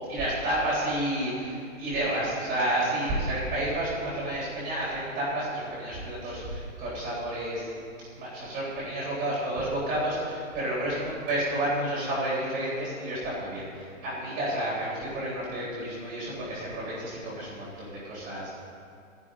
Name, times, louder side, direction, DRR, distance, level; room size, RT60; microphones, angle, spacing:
voice 1, 0.1-7.7 8.2-18.5, right 1 dB, 25° right, -8 dB, 3.7 m, -30 dB
15.5 x 10.5 x 3.8 m, 2.3 s
hypercardioid pair, 155°, 41 cm